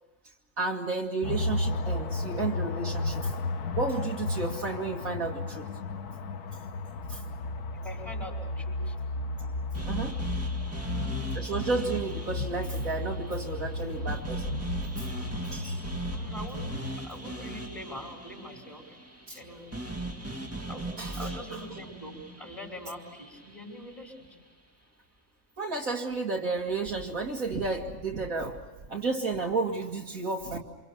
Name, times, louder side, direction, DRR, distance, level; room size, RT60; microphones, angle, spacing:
voice 1, 0.6-3.3 3.8-5.7 7.1-7.2 9.4-9.5 9.8-10.2 11.3-14.5 15.0-15.1 15.5-15.8 19.3-19.4 21.0-21.6 25.6-28.6 28.9-30.6, right 3 dB, 55° right, 0 dB, 2.5 m, -32 dB
sound 1, 1.2-17.0, left 2 dB, 70° left, 1.6 m, -33 dB
voice 2, 7.8-8.9 10.7-11.4 16.1-16.8 17.0-18.9 19.3-19.7 20.7-24.4, left 1 dB, 20° left, 2 dB, 5.9 m, -43 dB
sound 2, 9.7-23.9, right 2 dB, 10° right, 2.3 m, -39 dB
28.5 x 26.5 x 7.1 m, 1.2 s
omnidirectional pair, 1.8 m